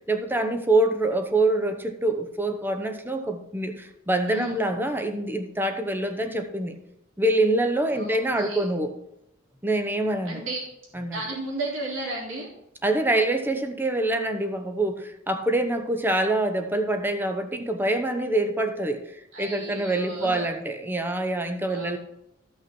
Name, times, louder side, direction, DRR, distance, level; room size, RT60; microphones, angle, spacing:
voice 1, 0.0-6.8 7.2-8.9 9.6-10.4 10.9-11.2 12.8-19.0 19.4-22.0, right 2 dB, 10° right, 6 dB, 0.9 m, -25 dB
voice 2, 7.9-8.7 10.2-10.6 11.1-12.5 19.3-20.5 21.6-21.9, right 2 dB, 70° right, -2 dB, 3.2 m, -34 dB
13.0 x 5.7 x 4.4 m, 0.84 s
head